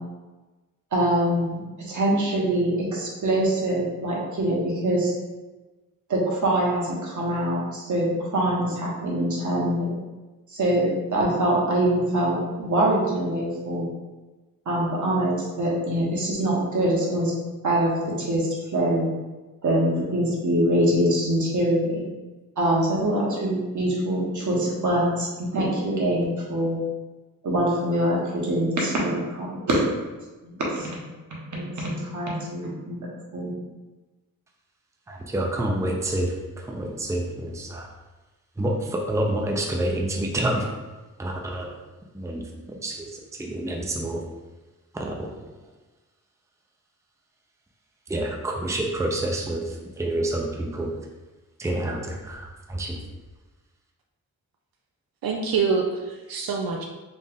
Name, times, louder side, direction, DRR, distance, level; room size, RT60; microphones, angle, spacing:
voice 1, 0.9-5.1 6.1-9.9 10.5-13.9 14.6-17.3 17.6-19.1 19.6-22.1 22.6-26.8 27.4-30.1 30.4-30.9 31.5-33.0 33.3-33.5, right 1 dB, 55° right, -4 dB, 1.3 m, -24 dB
voice 2, 35.1-37.9 38.6-40.7 41.2-41.7 42.1-42.4 42.8-44.2 44.9-45.3 48.1-50.9 51.6-53.0, right 1 dB, 10° right, 0 dB, 0.5 m, -28 dB
voice 3, 55.2-56.8, right 5 dB, 85° right, 1 dB, 0.5 m, -25 dB
4.2 x 2.4 x 3.5 m, 1.2 s
cardioid pair, 75°, 34 cm